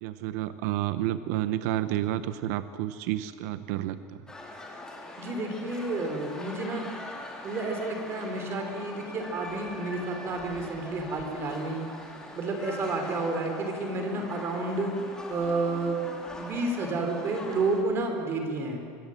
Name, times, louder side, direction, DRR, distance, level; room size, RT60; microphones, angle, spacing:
voice 1, 0.0-4.2, right 13 dB, 70° right, 12 dB, 0.9 m, -30 dB
sound 1, 4.3-17.8, left 2 dB, 10° left, 2.8 m, -42 dB
voice 2, 5.2-6.9 7.4-11.9 12.3-14.9 15.3-16.0 16.4-18.8, right 3 dB, 30° right, 4 dB, 3.3 m, -30 dB
25.0 x 21.0 x 7.7 m, 2.2 s
cardioid pair, 170°, 9 cm